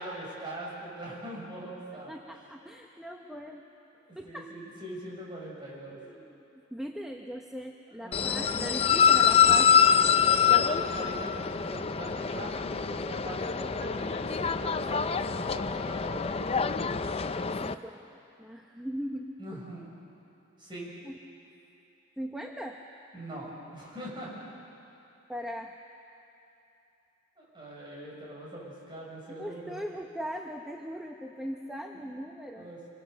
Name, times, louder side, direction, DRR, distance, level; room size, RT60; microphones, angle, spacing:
voice 1, 0.0-2.1 3.2-3.3 4.1-6.0 8.0-8.7 10.2-16.6 19.0-19.9 20.6-20.9 23.1-24.3 27.4-29.8 31.9-32.1 32.5-32.8, right 1 dB, 25° right, -4 dB, 6.7 m, -42 dB
voice 2, 2.1-3.6 4.1-4.5 6.0-9.9 17.6-19.3 21.0-21.1 22.2-22.8 25.3-25.7 29.4-32.7, equal, 5° right, 2 dB, 0.9 m, -39 dB
sound 1, 8.1-17.7, left 7 dB, 30° left, 0.5 m, -25 dB
27.0 x 23.0 x 6.8 m, 2.8 s
head